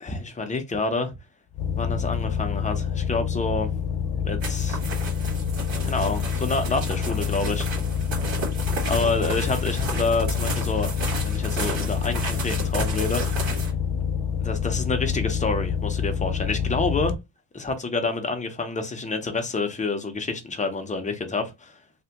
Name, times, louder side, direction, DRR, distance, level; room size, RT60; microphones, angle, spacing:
voice 1, 0.0-1.1 1.8-3.7 4.2-4.9 5.8-7.7 8.9-10.9 11.2-13.6 14.4-17.1 17.5-21.7, left 3 dB, 15° left, 0.4 m, -28 dB
sound 1, 1.5-17.1, left 7 dB, 90° left, 0.5 m, -27 dB
sound 2, 4.4-13.7, right 3 dB, 80° right, 1.9 m, -33 dB
3.3 x 2.1 x 2.8 m
wide cardioid pair, 155°, 46 cm